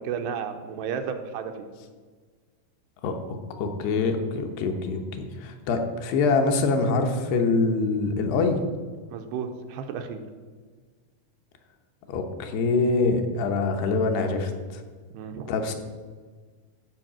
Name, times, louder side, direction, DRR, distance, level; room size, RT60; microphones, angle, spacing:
voice 1, 0.0-1.7 9.1-10.2 15.1-15.5, right 7 dB, 85° right, 6 dB, 2.7 m, -33 dB
voice 2, 3.0-8.6 12.1-14.8 15.5-15.7, left 3 dB, 75° left, 4 dB, 2.9 m, -25 dB
12.5 x 4.9 x 7.4 m, 1.5 s
omnidirectional pair, 4.9 m